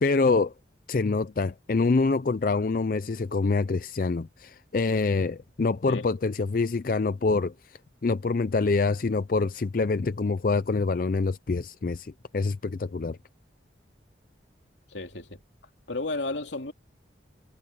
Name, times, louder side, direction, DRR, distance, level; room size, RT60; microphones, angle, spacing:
voice 1, 0.0-0.5 0.9-13.2, left 3 dB, 45° left, 0.4 m, -26 dB
voice 2, 14.9-15.4 15.9-16.7, left 2 dB, 75° left, 2.9 m, -33 dB
head